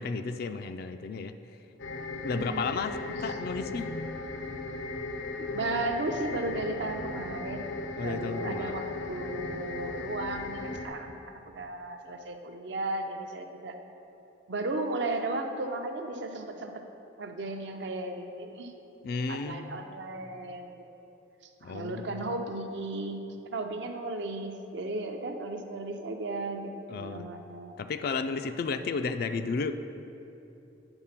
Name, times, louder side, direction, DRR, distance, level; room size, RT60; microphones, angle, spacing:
voice 1, 0.0-1.3 2.2-3.9 8.0-8.8 19.0-19.9 21.6-22.1 26.9-27.3 27.8-29.7, left 4 dB, 50° left, 9 dB, 0.3 m, -33 dB
sound 1, 1.8-10.9, left 3 dB, 85° left, 0.6 m, -37 dB
voice 2, 2.3-2.7 3.3-3.4 5.5-7.7 8.0-11.2 11.4-13.7 14.5-16.8 17.2-18.7 19.3-20.8 21.6-27.7, right 2 dB, 65° right, 4 dB, 0.6 m, -35 dB
8.9 x 4.1 x 5.8 m, 2.9 s
head